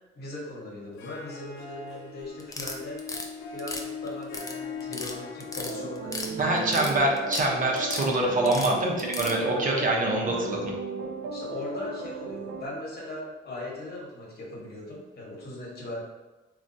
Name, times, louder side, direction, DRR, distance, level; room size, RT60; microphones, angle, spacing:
voice 1, 0.1-6.7 8.1-8.6 10.0-10.7 11.3-16.0, left 1 dB, 55° left, -3 dB, 1.2 m, -39 dB
Harp, 0.8-9.4, left 5 dB, 80° left, 0.4 m, -42 dB
sound 1, 2.4-3.3 3.6-4.5 4.8-5.1 5.4-6.3 6.6-7.5 7.8-8.1 8.5-9.3, left 3 dB, 15° left, 0.4 m, -35 dB
sound 2, 5.7-12.7, right 3 dB, 65° right, 0.4 m, -36 dB
voice 2, 6.4-10.7, right 2 dB, 40° right, -1 dB, 0.8 m, -25 dB
3.3 x 2.3 x 2.6 m, 1.2 s
cardioid pair, 90°, 20 cm